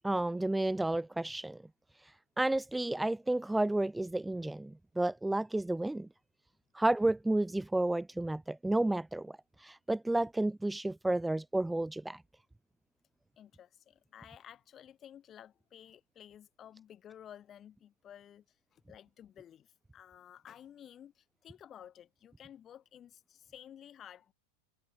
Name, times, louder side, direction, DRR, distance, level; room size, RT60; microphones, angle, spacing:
voice 1, 0.0-1.6 2.4-6.1 6.7-12.2, right 1 dB, 5° right, 1.2 m, -31 dB
voice 2, 13.4-24.3, left 10 dB, 25° left, 6.9 m, -54 dB
figure-of-eight pair, 90°, 0 cm